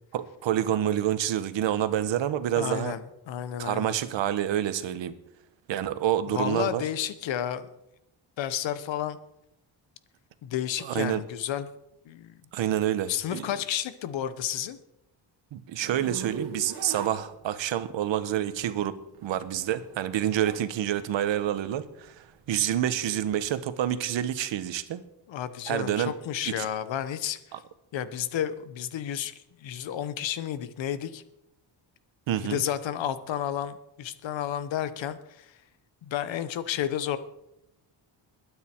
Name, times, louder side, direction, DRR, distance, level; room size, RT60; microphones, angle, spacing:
voice 1, 0.1-2.9 3.6-5.1 5.7-6.8 10.8-11.2 12.5-13.4 15.5-25.0 25.7-26.1 26.6-26.7 32.3-32.6, right 11 dB, 80° right, 12 dB, 1.2 m, -28 dB
voice 2, 2.5-3.9 6.3-7.7 8.4-9.2 10.4-11.7 12.0-12.4 13.1-14.8 25.3-27.4 27.9-31.2 32.4-35.6 36.0-37.2, left 10 dB, 85° left, 13 dB, 1.2 m, -31 dB
Zipper (clothing), 15.8-17.8 19.0-20.7 21.1-23.5, right 5 dB, 60° right, 2.1 m, -41 dB
21.0 x 9.5 x 4.5 m, 0.84 s
cardioid pair, 150°, 44 cm